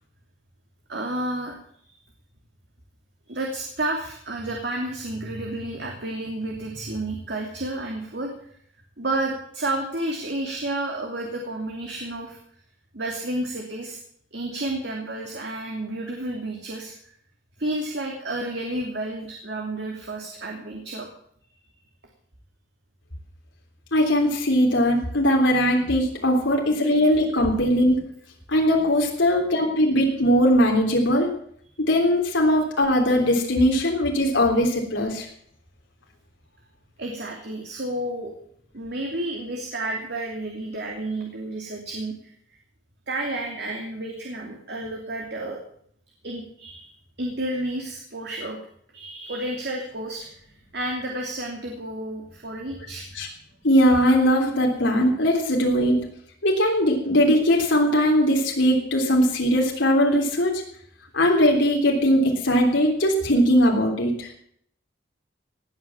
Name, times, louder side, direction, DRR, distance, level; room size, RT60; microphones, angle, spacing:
voice 1, 0.9-1.6 1.8-1.9 3.3-8.3 9.0-12.4 12.9-14.0 14.3-16.9 17.6-21.1 37.0-38.3 38.7-42.2 43.1-45.6 46.2-46.9 47.2-48.6 48.9-50.4 50.7-53.1, right 1 dB, 60° right, 1 dB, 2.9 m, -31 dB
voice 2, 23.9-28.0 28.5-31.3 31.9-35.3 53.1-53.3 53.6-56.0 56.4-60.6 61.1-64.3, equal, 85° left, 0 dB, 3.4 m, -20 dB
18.5 x 9.0 x 7.4 m, 0.65 s
head